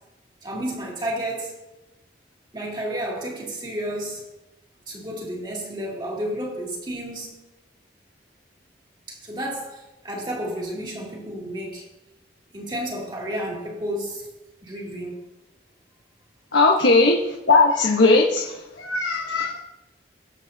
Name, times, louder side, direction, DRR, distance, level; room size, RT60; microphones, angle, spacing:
voice 1, 0.4-1.5 2.5-4.2 4.9-7.4 9.1-11.8 12.5-14.3 14.6-15.2, right 1 dB, 25° right, -3 dB, 2.5 m, -31 dB
voice 2, 16.5-17.2 17.5-19.6, left 3 dB, 90° left, -1 dB, 1.2 m, -18 dB
20.0 x 7.4 x 2.8 m, 0.97 s
head